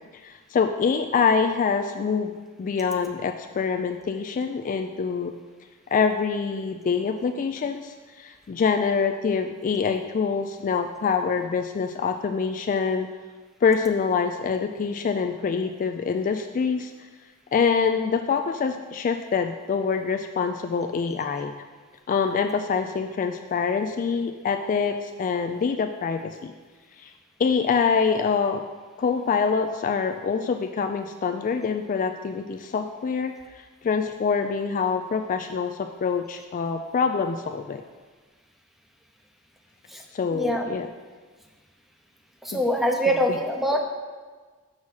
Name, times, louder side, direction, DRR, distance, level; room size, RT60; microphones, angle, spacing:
voice 1, 0.2-2.3 2.6-5.3 5.9-13.1 13.6-16.9 17.5-21.5 22.1-26.5 27.0-27.1 27.4-28.6 29.0-37.8 40.1-40.9 42.5-42.6, left 5 dB, 35° left, 6 dB, 0.3 m, -25 dB
voice 2, 40.3-40.7 42.4-43.8, equal, ahead, 2 dB, 0.7 m, -24 dB
6.3 x 6.2 x 5.5 m, 1.4 s
head